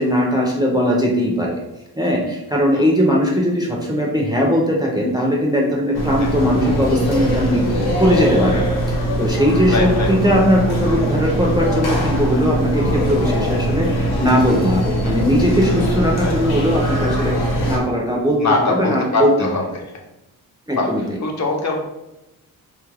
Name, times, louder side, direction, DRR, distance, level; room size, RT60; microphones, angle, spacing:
voice 1, 0.0-1.6 2.0-8.6 8.9-19.5 20.7-21.0, equal, 10° right, -2 dB, 0.4 m, -19 dB
sound 1, 5.9-17.8, right 1 dB, 85° left, 0.9 m, -21 dB
voice 2, 9.7-10.1 15.0-15.2 16.2-16.3 18.4-19.8 20.8-20.9 21.2-21.7, left 2 dB, 45° left, 0 dB, 0.7 m, -22 dB
3.1 x 2.3 x 3.2 m, 0.95 s
wide cardioid pair, 130°, 37 cm